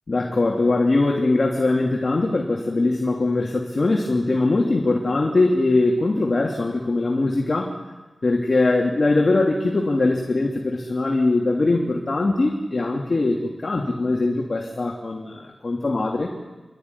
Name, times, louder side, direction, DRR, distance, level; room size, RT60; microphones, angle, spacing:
voice 1, 0.1-7.7 8.2-16.3, left 2 dB, 50° left, -1 dB, 2.9 m, -21 dB
29.0 x 13.0 x 9.8 m, 1.2 s
wide cardioid pair, 75°, 0 cm